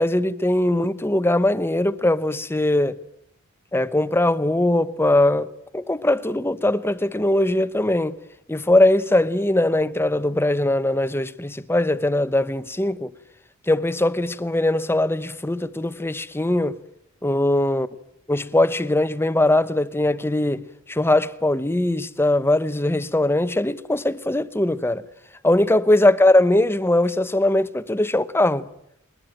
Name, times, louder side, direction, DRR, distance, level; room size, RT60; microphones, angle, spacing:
voice 1, 0.0-2.9 3.7-5.5 5.7-8.2 8.5-13.1 13.7-16.8 17.2-17.9 18.3-20.6 20.9-25.0 25.4-28.7, left 1 dB, 10° left, 0.9 m, -20 dB
22.5 x 20.0 x 8.9 m
head